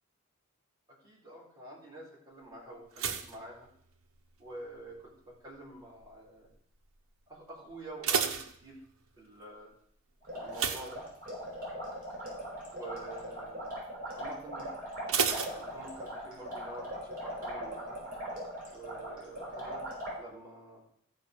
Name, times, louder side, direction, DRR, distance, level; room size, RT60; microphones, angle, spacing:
voice 1, 1.0-3.7 4.4-6.5 7.3-8.8 9.2-9.7 10.3-11.1 12.7-13.7 14.1-14.7 15.5-18.0 18.7-19.9 20.2-20.8, right 1 dB, 20° right, -6 dB, 4.0 m, -47 dB
sound 1, 2.9-4.4 4.7-5.2 5.8-6.2 6.5-6.6 7.0-7.1 7.7-9.2 10.5-11.7 12.0-12.3 12.7-12.8 15.1-16.3 16.6-16.7, right 6 dB, 70° right, 1.0 m, -33 dB
sound 2, 10.2-20.2, equal, 40° right, 5.5 m, -40 dB
14.0 x 5.2 x 6.6 m, 0.65 s
head